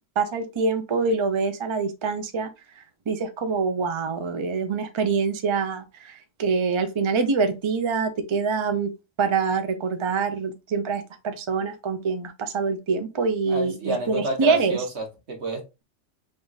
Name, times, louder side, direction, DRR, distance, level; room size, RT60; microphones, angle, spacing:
voice 1, 0.2-2.5 2.8-8.9 9.2-14.8, right 4 dB, 45° right, 0.4 m, -25 dB
voice 2, 13.5-15.8, right 1 dB, 65° right, 1.4 m, -30 dB
3.7 x 2.4 x 3.9 m
omnidirectional pair, 1.3 m